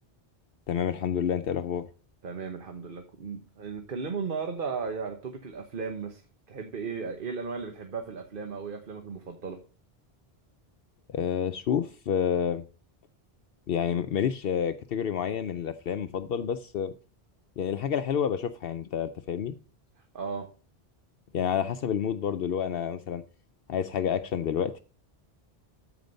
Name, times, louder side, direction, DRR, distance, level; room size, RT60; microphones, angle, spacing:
voice 1, 0.7-1.8 11.1-12.6 13.7-16.9 17.6-19.5 21.3-23.2 23.7-24.8, left 8 dB, 70° left, 0.8 m, -29 dB
voice 2, 2.2-6.2 6.5-9.6 20.1-20.5, right 5 dB, 60° right, 1.3 m, -35 dB
13.5 x 5.1 x 5.2 m
omnidirectional pair, 1.0 m